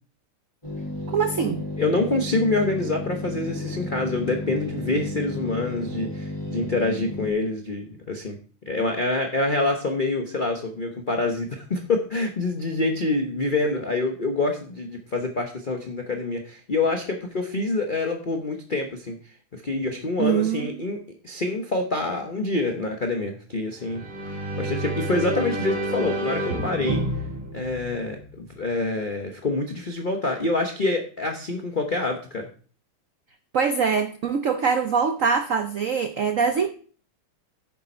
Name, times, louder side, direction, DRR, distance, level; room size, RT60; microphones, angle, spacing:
sound 1, 0.6-7.3, left 1 dB, 15° left, 3.4 m, -33 dB
voice 1, 1.1-1.6 20.2-20.7 33.5-36.7, right 6 dB, 85° right, 7 dB, 0.7 m, -23 dB
voice 2, 1.8-8.4 8.7-19.2 19.5-21.0 21.2-24.0 24.6-27.0 27.5-32.5, left 2 dB, 40° left, 3 dB, 0.7 m, -26 dB
sound 2, 23.8-28.5, right 1 dB, 70° right, 4.3 m, -29 dB
9.7 x 6.9 x 4.4 m, 0.41 s
omnidirectional pair, 2.4 m